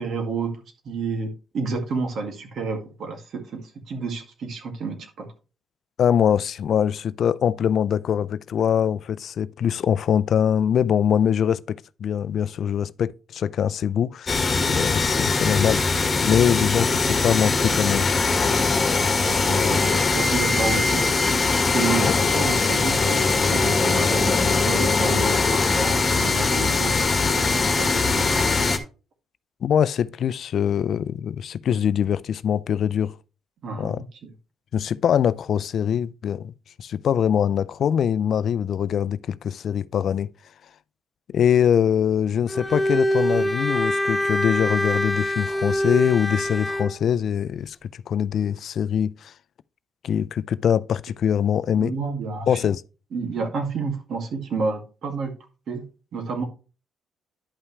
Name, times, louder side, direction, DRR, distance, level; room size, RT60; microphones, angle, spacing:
voice 1, 0.0-5.3 19.2-21.1 21.7-27.0 27.3-28.4 33.6-34.1 51.7-52.6 53.1-55.3 55.7-56.5, right 4 dB, 65° right, 2.1 m, -30 dB
voice 2, 6.0-18.4 22.0-22.1 29.6-33.2 33.8-34.0 34.7-36.5 36.8-40.3 41.3-49.3 50.0-51.9 52.5-52.8, left 8 dB, 60° left, 0.4 m, -23 dB
sound 1, 14.3-28.8, left 4 dB, 30° left, 1.5 m, -21 dB
Bowed string instrument, 42.5-47.0, equal, 10° left, 0.6 m, -24 dB
11.0 x 5.7 x 3.2 m
cardioid pair, 90°, 0 cm